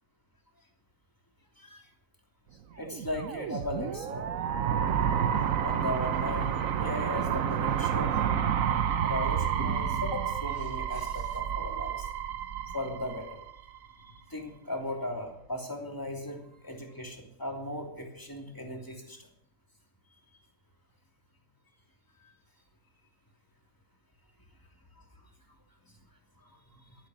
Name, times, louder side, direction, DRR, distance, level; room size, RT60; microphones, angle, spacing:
voice 1, 2.8-4.4 5.6-8.4 9.0-12.1 12.7-13.4 14.3-19.2 22.2-22.3 26.7-27.0, left 1 dB, 10° left, 1 dB, 2.8 m, -37 dB
sound 1, 2.8-13.8, right 8 dB, 60° right, 1.2 m, -30 dB
sound 2, 9.6-11.8 12.2-13.1 14.0-14.4 15.4-15.5, right 3 dB, 90° right, 2.4 m, -42 dB
13.0 x 12.5 x 6.3 m, 0.74 s
omnidirectional pair, 1.7 m